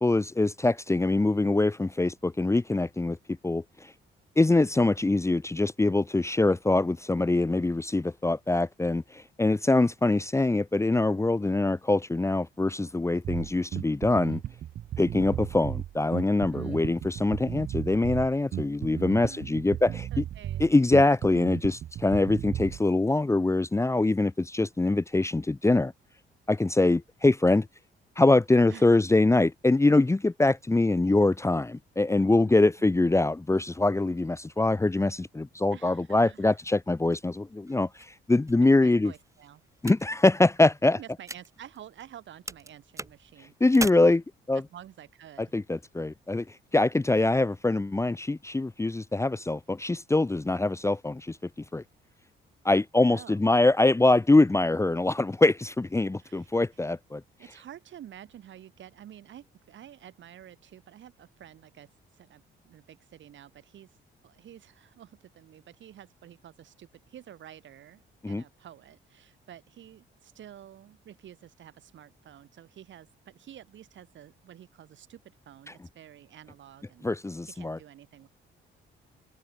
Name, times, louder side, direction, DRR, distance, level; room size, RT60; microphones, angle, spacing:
voice 1, 0.0-3.2 3.4-3.6 4.4-14.4 15.0-19.9 20.6-25.9 26.5-27.7 28.2-37.9 38.3-39.1 39.8-41.0 43.6-44.6 45.5-46.4 46.7-51.4 51.7-51.8 52.6-57.2 68.2-68.4 77.0-77.8, left 2 dB, 15° left, 0.9 m, -24 dB
Bass guitar, 13.2-22.8, right 11 dB, 50° right, 0.4 m, -35 dB
voice 2, 15.2-15.6 16.5-17.0 19.2-20.7 28.7-28.9 32.4-33.0 35.7-36.6 38.6-39.6 41.0-43.6 44.5-45.5 53.0-53.4 56.2-56.8 57.4-64.0 64.2-77.1 77.5-78.3, right 11 dB, 70° right, 7.6 m, -50 dB
sound 1, 37.1-42.2 42.5-43.9, right 2 dB, 15° right, 2.6 m, -41 dB
cardioid pair, 90°, 20 cm